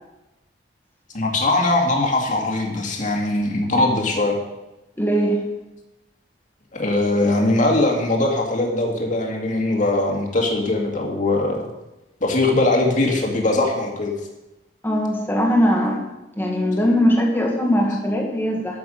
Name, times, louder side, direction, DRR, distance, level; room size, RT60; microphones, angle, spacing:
voice 1, 1.1-4.4 6.7-11.7 12.2-14.1, left 2 dB, 45° left, 0 dB, 2.1 m, -21 dB
voice 2, 5.0-5.4 14.8-16.0 16.4-18.8, equal, 10° left, -1 dB, 1.9 m, -20 dB
12.5 x 6.9 x 5.3 m, 0.97 s
head